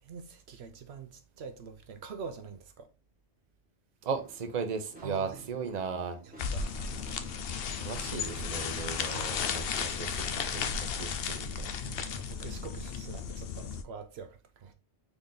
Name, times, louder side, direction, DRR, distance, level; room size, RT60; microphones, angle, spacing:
voice 1, 0.0-2.9 5.0-5.4 6.2-7.4 11.8-14.7, right 5 dB, 75° right, 0.9 m, -45 dB
voice 2, 4.0-6.2 7.8-10.1 10.5-10.7 11.0-11.7, right 5 dB, 45° right, 0.8 m, -36 dB
sound 1, 4.1-10.7, right 2 dB, 10° right, 1.3 m, -54 dB
sound 2, 6.4-13.8, left 6 dB, 65° left, 0.8 m, -34 dB
4.0 x 3.5 x 3.7 m
omnidirectional pair, 1.1 m